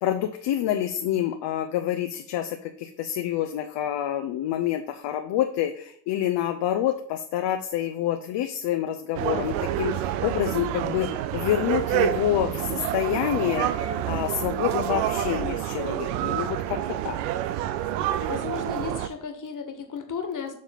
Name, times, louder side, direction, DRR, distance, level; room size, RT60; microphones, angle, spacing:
voice 1, 0.0-17.2, left 11 dB, 55° left, 7 dB, 0.8 m, -27 dB
sound 1, 9.1-19.1, right 11 dB, 80° right, 0.7 m, -28 dB
voice 2, 17.8-20.5, left 6 dB, 40° left, 5 dB, 1.7 m, -35 dB
7.5 x 3.6 x 5.8 m, 0.67 s
supercardioid pair, 80°, 50 cm